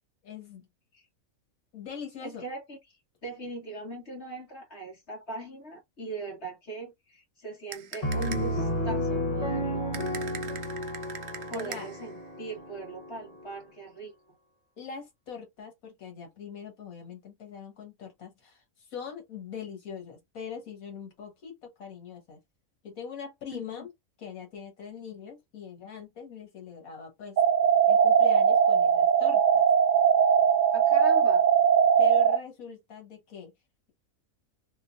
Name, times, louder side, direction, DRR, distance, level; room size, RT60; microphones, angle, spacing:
voice 1, 0.2-0.7 1.7-2.4 11.5-11.9 14.8-22.4 22.8-23.9 24.2-27.4 27.9-29.7 32.0-33.5, left 6 dB, 90° left, 1.8 m, -42 dB
voice 2, 2.2-2.8 3.2-10.0 11.5-14.1 23.5-23.9 30.7-31.5, right 2 dB, 50° left, 2.2 m, -40 dB
sound 1, 7.7-8.6 9.9-12.1, right 8 dB, 60° right, 0.8 m, -42 dB
Piano, 8.0-13.6, equal, 30° left, 0.9 m, -32 dB
sound 2, 27.4-32.4, right 7 dB, 90° right, 0.4 m, -20 dB
3.8 x 2.6 x 2.6 m
omnidirectional pair, 1.4 m